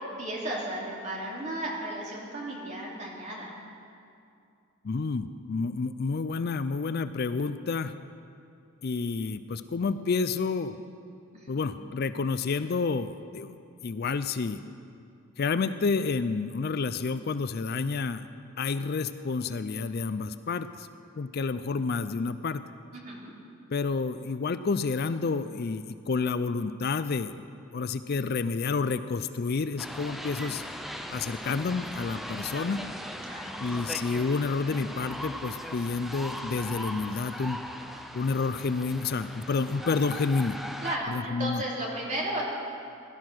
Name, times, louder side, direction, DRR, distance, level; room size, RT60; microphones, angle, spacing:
voice 1, 0.0-3.5 11.3-11.6 22.9-23.3 33.3-33.6 40.8-42.4, right 1 dB, 35° right, -3 dB, 2.8 m, -34 dB
voice 2, 4.8-7.9 8.8-10.8 11.5-13.5 13.8-14.6 15.4-18.3 18.6-20.9 21.2-22.6 23.7-27.3 27.7-30.6 31.1-32.8 33.6-37.6 38.1-40.6 41.1-41.6, left 4 dB, 45° left, 12 dB, 0.4 m, -29 dB
sound 1, 29.8-41.0, equal, ahead, 0.6 m, -39 dB
17.5 x 11.5 x 6.2 m, 2.5 s
head